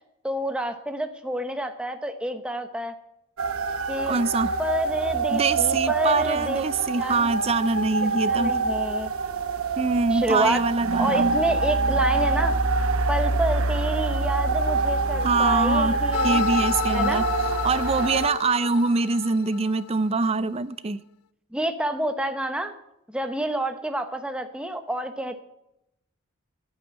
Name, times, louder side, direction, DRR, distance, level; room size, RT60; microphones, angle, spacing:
voice 1, 0.2-2.9 3.9-4.2 4.6-6.6 7.0-7.3 8.3-9.1 10.1-10.6 11.0-12.6 13.1-16.5 16.9-17.3 21.5-22.7 23.1-25.4, right 1 dB, 5° right, 0.9 m, -28 dB
sound 1, 3.4-18.3, right 3 dB, 85° right, 0.9 m, -25 dB
voice 2, 4.1-4.5 5.3-8.5 9.8-11.3 15.2-16.0 16.2-21.0, right 3 dB, 30° right, 0.5 m, -24 dB
sound 2, 16.1-20.1, left 10 dB, 80° left, 0.4 m, -31 dB
11.0 x 9.8 x 8.2 m
head